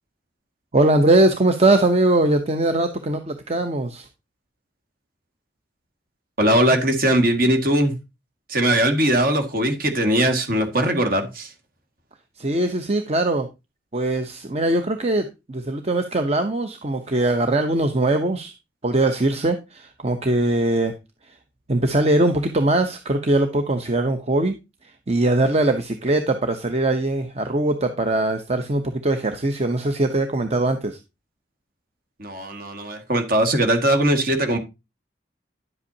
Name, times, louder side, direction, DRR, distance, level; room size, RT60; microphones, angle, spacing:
voice 1, 0.7-4.1 12.4-13.5 13.9-18.5 18.8-20.9 21.7-24.6 24.8-31.0, right 2 dB, 35° right, 0.8 m, -21 dB
voice 2, 6.4-7.9 8.5-11.5 32.2-34.6, right 1 dB, 55° right, 2.0 m, -20 dB
10.5 x 8.1 x 2.8 m
head